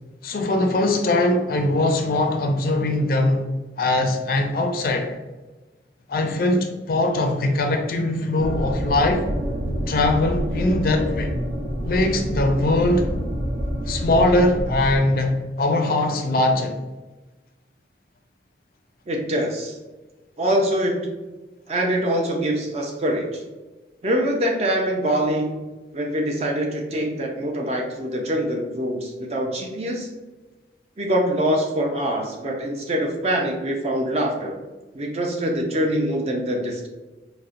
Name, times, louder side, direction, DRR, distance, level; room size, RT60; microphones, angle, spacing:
voice 1, 0.2-3.4 3.8-5.2 6.1-9.2 9.9-11.3 11.8-13.1 13.9-16.8, left 2 dB, 50° left, 4 dB, 0.4 m, -21 dB
sound 1, 8.4-15.0, equal, 60° right, 0.9 m, -27 dB
voice 2, 19.1-19.7 20.4-21.0 21.7-23.4 24.0-25.6 25.9-30.2 31.0-34.6 34.9-36.9, right 1 dB, 35° right, 1 dB, 0.5 m, -24 dB
4.1 x 2.1 x 2.5 m, 1.2 s
head